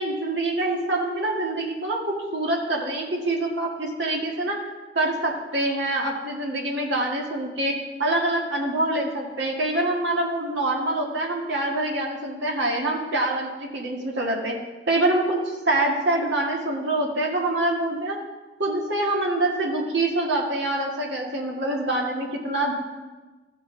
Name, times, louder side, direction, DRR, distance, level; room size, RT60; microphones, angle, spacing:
voice 1, 0.0-4.6 5.0-7.7 8.0-14.6 14.9-18.2 18.6-22.7, right 2 dB, 75° right, -1 dB, 1.8 m, -25 dB
14.5 x 5.7 x 3.8 m, 1.3 s
head